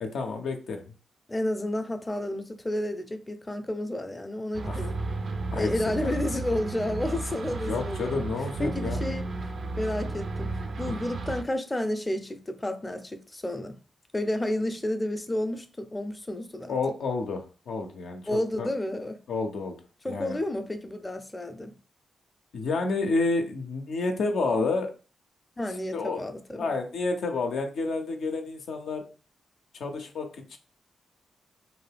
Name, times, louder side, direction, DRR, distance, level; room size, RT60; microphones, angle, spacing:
voice 1, 0.0-0.8 4.7-4.9 5.5-5.7 6.0-6.1 7.7-9.0 10.9-11.0 16.7-18.7 19.3-19.7 20.1-20.4 22.5-24.9 25.9-26.2 26.6-29.0 29.8-30.6, left 3 dB, 75° left, 0.5 m, -30 dB
voice 2, 1.3-5.0 5.5-8.2 8.6-9.2 9.7-13.8 14.1-16.7 18.3-19.2 20.0-21.7 25.6-26.7, left 1 dB, 25° left, 0.5 m, -31 dB
sound 1, 4.5-11.4, right 2 dB, 60° right, 0.4 m, -33 dB
2.6 x 2.3 x 3.3 m
supercardioid pair, 45°, 0 cm